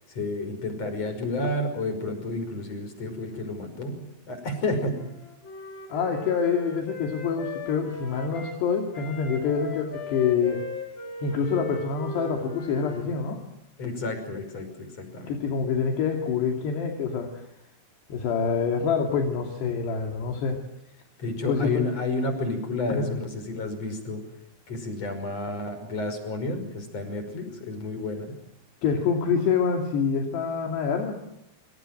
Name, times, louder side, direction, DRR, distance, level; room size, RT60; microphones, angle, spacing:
voice 1, 0.1-5.1 13.8-15.4 21.2-24.2 24.7-28.3, left 2 dB, 35° left, 8 dB, 6.6 m, -31 dB
Wind instrument woodwind instrument, 5.0-8.6 8.9-13.1, left 2 dB, 55° left, 6.3 m, -39 dB
voice 2, 5.9-10.6 11.2-13.4 15.3-17.4 18.1-20.6 21.5-21.8 22.9-23.1 28.8-31.1, left 6 dB, 70° left, 2 dB, 4.6 m, -26 dB
28.5 x 26.5 x 7.8 m, 0.82 s
omnidirectional pair, 5.1 m